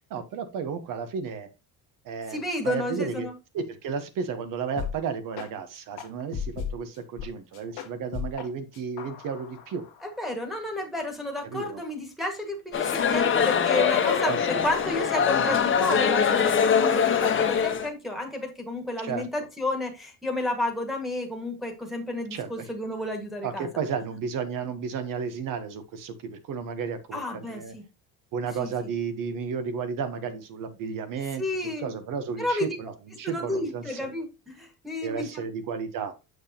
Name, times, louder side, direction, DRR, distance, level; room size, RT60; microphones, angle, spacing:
voice 1, 0.1-1.5 2.0-2.4 2.6-3.3 3.5-9.9 11.4-11.8 14.2-14.6 19.0-19.3 22.3-22.7 23.4-27.7 28.3-34.1 35.0-36.1, right 6 dB, 60° right, 1.1 m, -33 dB
voice 2, 2.3-3.3 10.0-23.7 27.1-27.8 28.6-28.9 31.4-31.9 32.4-32.8 33.2-35.4, left 1 dB, ahead, 1.7 m, -31 dB
sound 1, 4.8-5.0 5.3-5.5 6.0-7.3 7.5-8.5 8.7-10.3, left 7 dB, 80° left, 1.5 m, -35 dB
sound 2, 12.7-17.9, left 7 dB, 30° left, 1.1 m, -23 dB
7.0 x 6.4 x 2.8 m
cardioid pair, 150°, 37 cm